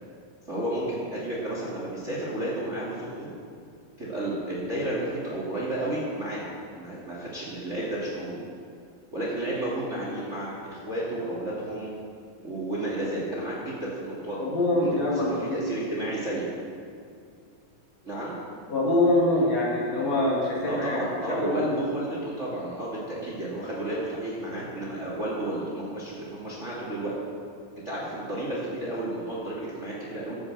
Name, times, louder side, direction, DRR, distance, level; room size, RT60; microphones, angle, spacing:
voice 1, 0.5-3.3 4.0-8.4 9.1-11.9 12.4-14.4 14.8-16.5 18.0-18.4 20.6-27.1 27.8-30.3, right 1 dB, 25° right, -5 dB, 2.0 m, -32 dB
voice 2, 14.4-15.6 18.7-21.0 21.3-21.8, left 1 dB, 55° left, -4 dB, 3.0 m, -24 dB
12.0 x 8.6 x 7.6 m, 2.3 s
omnidirectional pair, 4.0 m